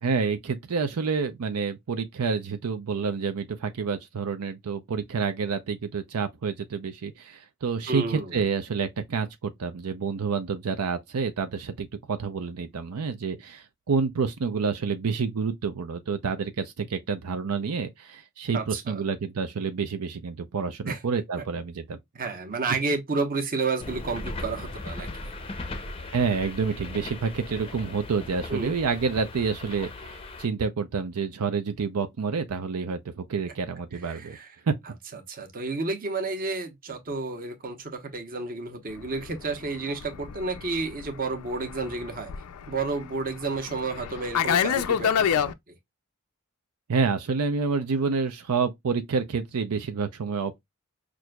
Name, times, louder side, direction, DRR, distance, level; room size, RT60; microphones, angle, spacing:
voice 1, 0.0-22.0 26.1-34.4 34.7-34.8 46.9-50.6, right 5 dB, 85° right, 0.5 m, -28 dB
voice 2, 7.9-8.3 18.5-19.0 20.9-21.0 22.1-25.1 28.5-28.7 34.1-34.5 35.3-42.3 42.7-45.5, right 3 dB, 40° right, 0.9 m, -31 dB
sound 1, 23.8-30.5, left 2 dB, 25° left, 0.5 m, -38 dB
Fixed-wing aircraft airplane, 39.0-45.5, left 8 dB, 75° left, 0.4 m, -28 dB
6.0 x 2.5 x 2.2 m
head